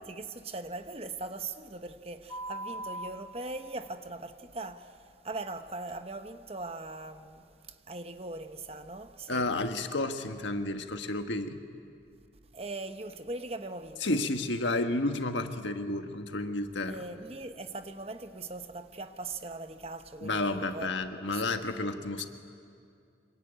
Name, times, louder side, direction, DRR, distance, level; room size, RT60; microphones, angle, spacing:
voice 1, 0.0-9.5 12.5-14.0 16.9-20.9 21.3-21.4, right 2 dB, 30° right, 1.0 m, -40 dB
sound 1, 2.3-3.1 5.9-6.0, right 1 dB, 25° left, 1.4 m, -38 dB
voice 2, 9.3-11.6 14.0-17.0 20.2-22.2, left 2 dB, 70° left, 1.5 m, -31 dB
26.0 x 23.0 x 9.2 m
head